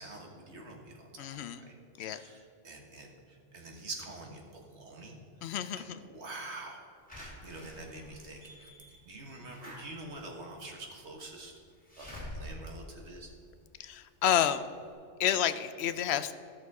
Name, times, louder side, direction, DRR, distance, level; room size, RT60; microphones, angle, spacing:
voice 1, 0.0-8.7 9.1-11.5 12.0-13.3, right 2 dB, 70° right, 1 dB, 1.7 m, -46 dB
voice 2, 1.2-1.6 2.0-2.2 5.4-6.0 13.8-14.6 15.2-16.3, left 10 dB, 70° left, 12 dB, 0.8 m, -30 dB
Slam / Alarm, 7.1-13.9 14.4-14.5 14.7-14.8, left 1 dB, 5° left, 2.6 m, -48 dB
14.0 x 6.5 x 4.7 m, 2.3 s
omnidirectional pair, 1.2 m